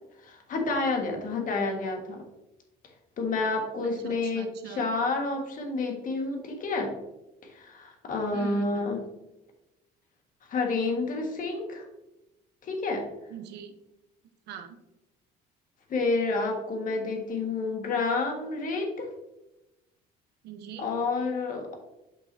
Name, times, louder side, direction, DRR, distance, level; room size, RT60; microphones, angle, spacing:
voice 1, 0.2-2.2 3.2-6.9 7.5-9.0 10.5-11.8 12.6-13.0 15.9-19.1 20.8-21.8, left 3 dB, 55° left, 3 dB, 1.6 m, -29 dB
voice 2, 4.0-4.9 8.3-8.9 13.3-13.7 14.5-14.8 20.4-20.9, right 8 dB, 80° right, 6 dB, 0.8 m, -41 dB
7.7 x 5.8 x 2.7 m, 0.96 s
cardioid pair, 110°, 17 cm